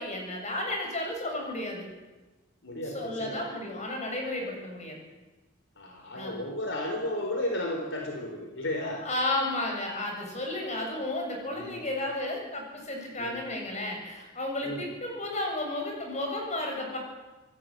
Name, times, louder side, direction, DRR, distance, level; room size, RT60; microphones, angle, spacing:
voice 1, 0.0-1.9 2.9-5.0 6.2-6.3 9.0-17.0, left 1 dB, 35° left, 1 dB, 7.4 m, -33 dB
voice 2, 2.6-3.5 5.8-9.1 11.5-11.8 13.2-13.4 14.6-14.8, left 1 dB, 65° left, 2 dB, 4.2 m, -34 dB
26.5 x 19.0 x 9.1 m, 1.2 s
head